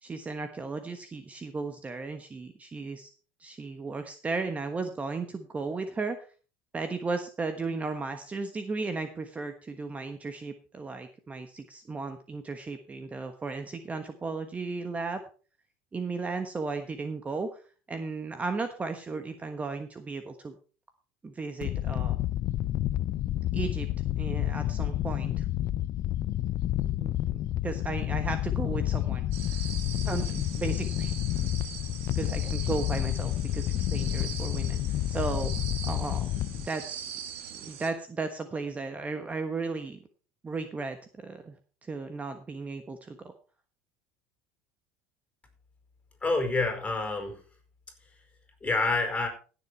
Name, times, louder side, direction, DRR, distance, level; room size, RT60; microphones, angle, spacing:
voice 1, 0.0-3.1 3.4-6.2 6.7-15.2 15.9-17.6 17.9-20.6 21.2-22.2 23.5-23.9 24.2-25.5 26.8-29.6 29.9-31.2 32.1-34.8 35.1-35.5 35.8-37.0 37.5-40.0 40.4-41.5 41.8-43.3, right 4 dB, 20° right, 8 dB, 1.3 m, -35 dB
sound 1, 21.6-36.7, left 13 dB, 50° left, 0.6 m, -29 dB
sound 2, 29.3-37.9, right 8 dB, 85° right, 2.4 m, -42 dB
voice 2, 46.2-47.4 48.6-49.3, left 3 dB, 20° left, 6 dB, 4.7 m, -27 dB
15.5 x 7.1 x 4.6 m, 0.37 s
supercardioid pair, 100°, 7 cm